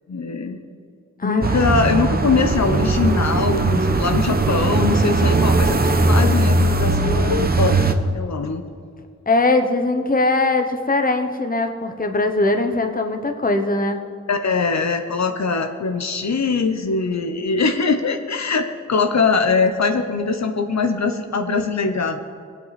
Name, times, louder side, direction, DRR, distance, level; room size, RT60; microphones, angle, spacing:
voice 1, 0.1-0.6 1.2-8.7 14.3-22.2, left 4 dB, 70° left, 6 dB, 0.9 m, -22 dB
sound 1, 1.4-7.9, right 2 dB, 30° right, 0.8 m, -19 dB
voice 2, 9.3-14.0, left 2 dB, 30° left, 6 dB, 1.0 m, -20 dB
22.0 x 8.5 x 4.2 m, 2.1 s
wide cardioid pair, 120°, 29 cm